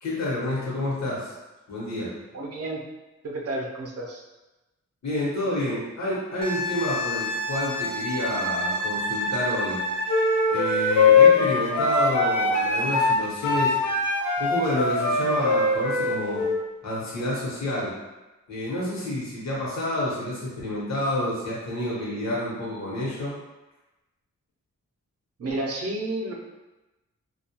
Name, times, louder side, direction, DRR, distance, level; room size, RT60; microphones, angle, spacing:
voice 1, 0.0-1.3 1.7-2.2 5.0-9.8 10.5-13.8 14.4-16.4 16.8-17.9 18.5-23.4, left 1 dB, 65° left, -6 dB, 1.0 m, -29 dB
voice 2, 2.3-2.8 3.2-4.2 25.4-26.3, right 2 dB, 55° right, -1 dB, 0.5 m, -31 dB
Wind instrument woodwind instrument, 6.4-10.6 13.3-13.5, equal, 20° left, 0.3 m, -29 dB
sound 1, 10.1-16.6, left 4 dB, 85° left, 0.5 m, -21 dB
2.3 x 2.1 x 2.8 m, 1.1 s
wide cardioid pair, 120°, 29 cm